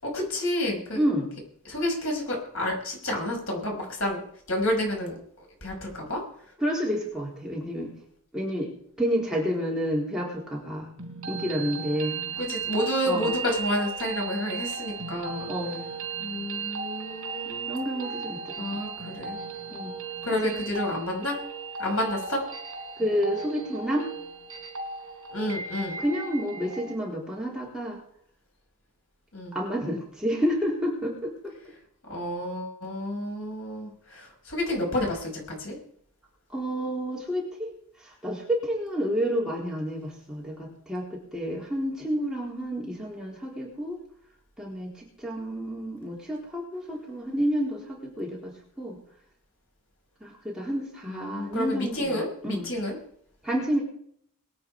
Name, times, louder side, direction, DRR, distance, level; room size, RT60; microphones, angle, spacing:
voice 1, 0.0-1.0 1.7-5.2 5.6-6.2 12.4-15.5 16.2-17.7 18.6-19.4 20.2-21.4 21.8-22.4 25.3-26.0 29.3-29.6 32.1-35.8 51.1-53.0, left 1 dB, 65° left, 0 dB, 6.0 m, -30 dB
voice 2, 1.0-1.3 6.6-7.9 8.3-8.7 9.0-10.9 11.3-12.2 13.1-13.3 15.5-15.9 17.4-18.8 19.7-19.9 20.3-20.5 23.0-24.1 26.0-28.0 29.5-31.5 36.5-37.7 38.2-44.0 44.6-49.0 50.2-52.7 53.4-53.8, equal, 5° right, -4 dB, 4.0 m, -29 dB
sound 1, 11.0-27.0, right 5 dB, 70° right, 4.0 m, -36 dB
22.5 x 9.1 x 4.9 m, 0.64 s
head